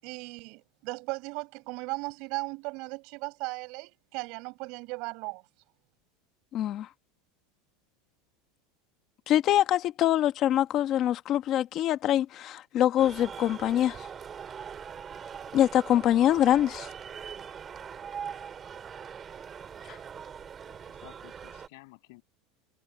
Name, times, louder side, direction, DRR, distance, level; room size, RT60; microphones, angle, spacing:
voice 1, 0.0-5.4, right 27 dB, 45° right, 7.3 m, -37 dB
voice 2, 6.5-6.9 9.3-14.1 15.5-16.9 19.9-20.0, left 12 dB, 30° left, 1.2 m, -24 dB
sound 1, 13.0-21.7, right 7 dB, 20° right, 2.9 m, -42 dB
voice 3, 20.7-22.2, left 26 dB, 55° left, 7.9 m, -54 dB
supercardioid pair, 170°, 0 cm